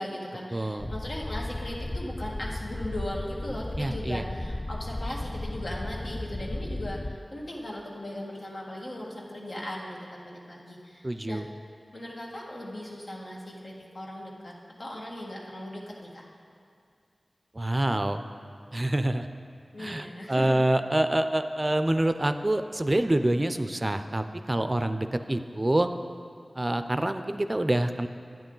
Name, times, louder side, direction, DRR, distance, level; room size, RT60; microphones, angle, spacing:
voice 1, 0.0-11.4 11.9-14.5 14.8-16.2 19.7-20.6, left 1 dB, 70° left, -3 dB, 1.6 m, -38 dB
voice 2, 0.5-0.9 3.8-4.2 11.0-11.4 17.5-18.2 18.7-19.3 19.8-25.9 26.5-28.1, right 1 dB, 35° right, 9 dB, 0.4 m, -26 dB
sound 1, 0.8-7.2, left 1 dB, 35° left, 0.3 m, -35 dB
10.5 x 9.1 x 3.9 m, 2.4 s
cardioid pair, 40°, 0 cm